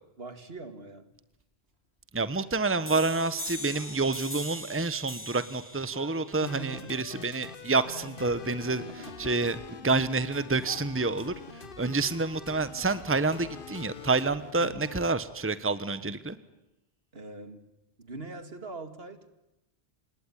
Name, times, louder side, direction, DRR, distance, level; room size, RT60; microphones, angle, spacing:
voice 1, 0.2-1.1 6.2-6.9 8.9-9.1 14.6-14.9 17.1-17.6 18.0-19.3, right 3 dB, 70° right, 10 dB, 2.5 m, -42 dB
Bark, 1.2-4.4 4.8-6.7 7.1-9.0 9.2-11.6 12.0-15.9 16.2-16.3 16.6-17.0 17.5-17.6 17.9-18.0 18.5-18.6, equal, 80° left, 5.9 m, -56 dB
voice 2, 2.1-9.6 9.8-11.3 11.8-16.4, right 3 dB, 15° right, 14 dB, 1.1 m, -28 dB
sound 1, 2.9-8.3, equal, 10° left, 2.6 m, -42 dB
sound 2, 6.5-15.0, left 5 dB, 60° left, 1.3 m, -45 dB
27.5 x 21.0 x 10.0 m, 0.91 s
omnidirectional pair, 1.1 m